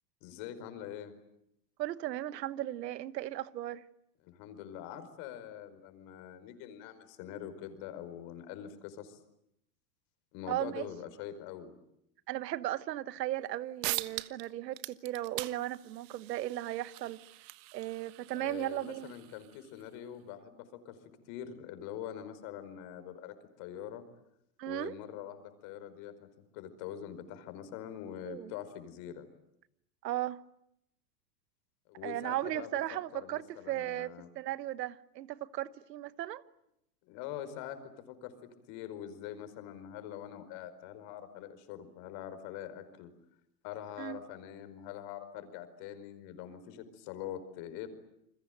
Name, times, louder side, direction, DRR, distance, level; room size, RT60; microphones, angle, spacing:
voice 1, 0.2-1.1 4.2-9.2 10.3-11.7 18.3-21.0 21.3-24.0 24.6-26.3 26.5-29.2 31.9-34.3 37.0-38.3 38.7-43.1 43.6-47.9, left 10 dB, 50° left, 5.0 m, -44 dB
voice 2, 1.8-3.8 10.5-10.9 12.3-17.2 17.7-19.1 24.6-24.9 28.3-28.5 30.0-30.4 32.0-36.4 44.0-44.2, right 14 dB, 80° right, 1.3 m, -36 dB
sound 1, 13.5-13.6 13.8-14.5 14.7-19.9, right 20 dB, 50° right, 1.4 m, -42 dB
29.0 x 21.5 x 9.2 m
hypercardioid pair, 125°, 49 cm